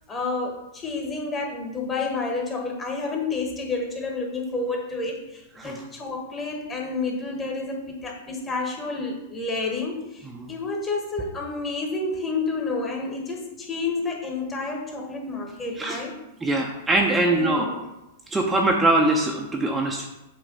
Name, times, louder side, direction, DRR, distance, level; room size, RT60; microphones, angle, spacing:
voice 1, 0.1-16.2 17.2-17.8, left 3 dB, 20° left, 1 dB, 1.6 m, -30 dB
voice 2, 16.4-17.7 18.3-20.1, right 2 dB, 10° right, 0 dB, 0.8 m, -22 dB
8.0 x 3.2 x 5.4 m, 0.94 s
figure-of-eight pair, 100°, 0 cm